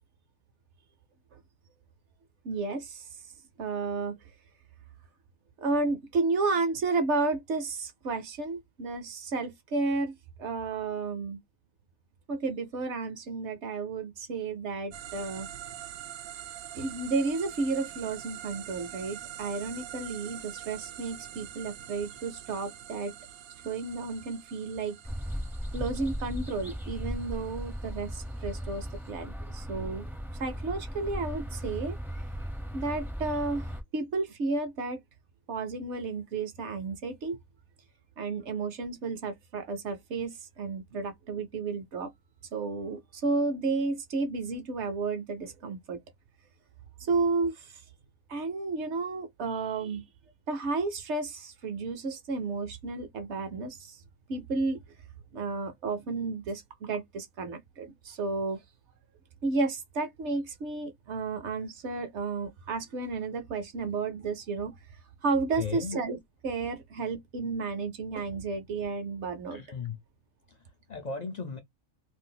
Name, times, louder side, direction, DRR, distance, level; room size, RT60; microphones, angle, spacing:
voice 1, 2.4-3.1 3.6-4.2 5.6-11.4 12.3-15.5 16.7-23.1 23.6-25.0 25.7-30.1 30.4-32.0 32.7-35.0 35.5-37.4 38.2-42.1 42.5-46.0 47.0-47.8 48.3-50.0 50.5-54.0 54.3-54.8 55.3-58.6 59.4-64.7 65.2-66.2 66.4-69.6, right 3 dB, 60° right, 0.9 m, -32 dB
sound 1, 14.9-29.1, right 11 dB, 85° right, 1.0 m, -45 dB
sound 2, 25.0-33.8, equal, 5° right, 0.4 m, -37 dB
voice 2, 65.6-66.0 69.5-70.0 70.5-71.6, left 5 dB, 65° left, 0.4 m, -37 dB
2.6 x 2.4 x 3.8 m
omnidirectional pair, 1.4 m